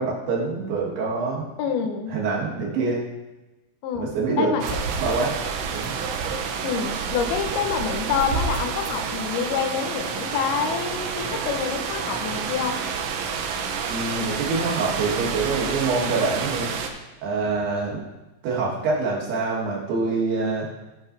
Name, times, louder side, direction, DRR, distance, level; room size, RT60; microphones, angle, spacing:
voice 1, 0.0-1.4 2.1-3.0 3.9-4.5 5.0-5.3 5.7-6.0 13.9-16.7 17.2-18.0 18.4-20.7, right 4 dB, 65° right, -3 dB, 3.4 m, -25 dB
voice 2, 1.6-2.2 3.8-4.1 4.4-4.8 6.6-12.8, left 7 dB, 75° left, 4 dB, 2.3 m, -27 dB
sound 1, 4.6-16.9, right 6 dB, 85° right, 3.2 m, -29 dB
12.5 x 7.3 x 2.6 m, 1.1 s
omnidirectional pair, 5.3 m